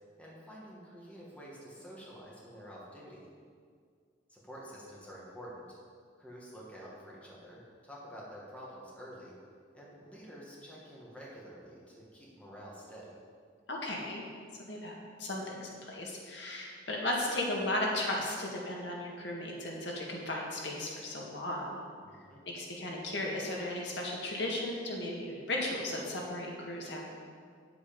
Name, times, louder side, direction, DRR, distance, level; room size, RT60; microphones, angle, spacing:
voice 1, 0.2-3.3 4.3-5.8 6.2-9.3 9.7-13.1 22.0-22.4, equal, 5° left, -6 dB, 2.0 m, -49 dB
voice 2, 13.7-14.2 14.7-21.8 22.5-27.1, left 1 dB, 70° left, -2 dB, 1.8 m, -35 dB
9.7 x 7.9 x 5.3 m, 2.1 s
head